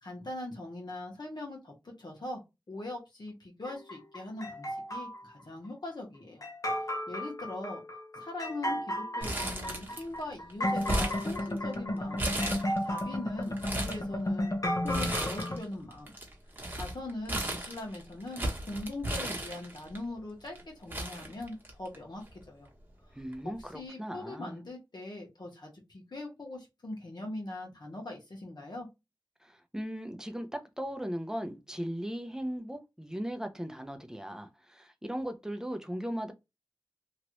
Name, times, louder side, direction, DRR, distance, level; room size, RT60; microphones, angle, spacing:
voice 1, 0.0-2.4 2.7-6.4 7.1-7.8 8.1-12.3 12.8-16.1 16.7-22.7 23.4-28.9, left 2 dB, 65° left, 1.2 m, -41 dB
sound 1, 3.6-5.2 6.4-15.6, left 1 dB, 45° left, 0.9 m, -33 dB
Crumpling crinkling, 9.2-10.2 10.5-11.7 12.2-13.0 13.4-14.0 14.9-15.6 15.9-20.0 20.6-20.7 20.9-22.0 22.3-22.4 23.3-23.6, right 1 dB, 25° right, 1.2 m, -35 dB
voice 2, 23.1-24.6 29.4-36.3, equal, 5° right, 0.7 m, -38 dB
3.1 x 2.4 x 3.0 m
wide cardioid pair, 50°, 8 cm